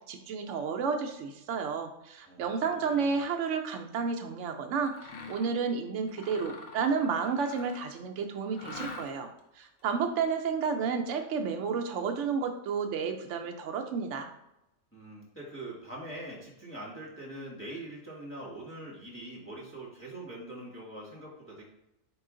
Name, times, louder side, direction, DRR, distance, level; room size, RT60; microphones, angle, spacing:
voice 1, 0.1-4.9 5.3-9.3 9.6-14.3, right 5 dB, 70° right, 5 dB, 0.9 m, -31 dB
voice 2, 2.3-3.2 14.9-21.6, right 1 dB, 10° left, -6 dB, 1.3 m, -43 dB
Mechanisms, 4.9-5.6 6.1-8.0 8.5-9.4, left 3 dB, 55° left, 0.8 m, -45 dB
4.6 x 3.1 x 3.7 m, 0.89 s
omnidirectional pair, 1.4 m